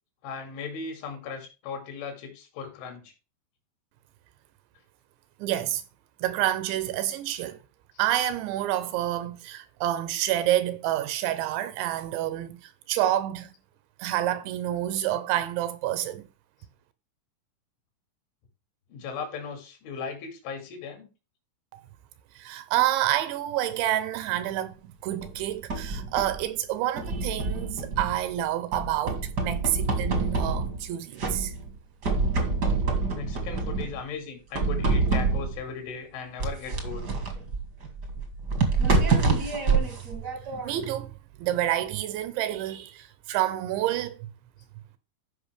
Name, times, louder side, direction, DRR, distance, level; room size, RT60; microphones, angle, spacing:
voice 1, 0.2-3.1 18.9-21.1 33.1-37.1, left 5 dB, 75° left, 4.9 m, -37 dB
voice 2, 5.4-5.8 6.2-7.6 8.0-13.5 14.0-16.3 21.7-21.8 22.4-24.8 25.0-31.5 39.2-39.4 39.8-39.9 40.6-41.1 41.4-44.2, right 13 dB, 80° right, 2.9 m, -28 dB
sound 1, 25.2-26.4 27.0-28.3 28.7-30.9 31.2-31.7 32.0-34.0 34.5-35.6 36.4-40.9, right 4 dB, 55° right, 1.1 m, -27 dB
13.5 x 5.6 x 3.4 m
omnidirectional pair, 5.6 m